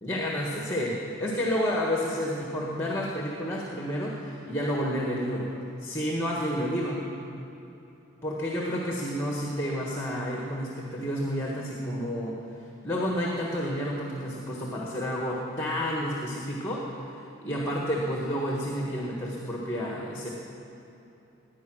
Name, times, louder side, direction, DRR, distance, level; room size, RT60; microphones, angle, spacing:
voice 1, 0.0-5.5 5.8-7.0 8.2-12.4 12.8-16.8 17.1-20.3, equal, 10° left, -2 dB, 1.4 m, -30 dB
17.5 x 9.9 x 6.2 m, 3.0 s
head